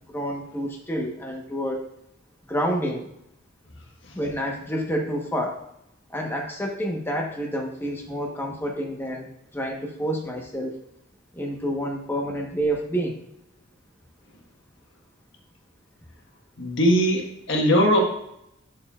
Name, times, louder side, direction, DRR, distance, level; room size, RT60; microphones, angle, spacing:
voice 1, 0.1-1.9 2.5-3.1 4.1-5.6 6.1-10.8 11.3-13.2, equal, 10° left, 0 dB, 1.1 m, -28 dB
voice 2, 16.6-18.0, equal, 65° left, 1 dB, 1.5 m, -20 dB
9.6 x 6.5 x 2.4 m, 0.80 s
head